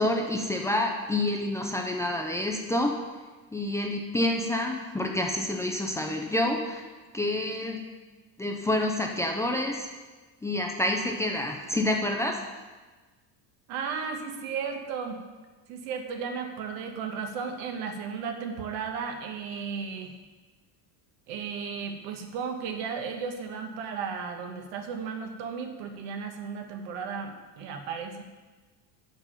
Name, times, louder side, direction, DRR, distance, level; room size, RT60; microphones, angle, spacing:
voice 1, 0.0-3.0 3.5-6.8 7.1-7.8 8.4-9.9 10.4-12.4, left 1 dB, 5° left, 1 dB, 0.4 m, -28 dB
voice 2, 13.7-15.2 15.7-20.1 21.3-28.2, right 6 dB, 85° right, 5 dB, 1.3 m, -34 dB
8.4 x 6.1 x 5.6 m, 1.3 s
cardioid pair, 160°, 41 cm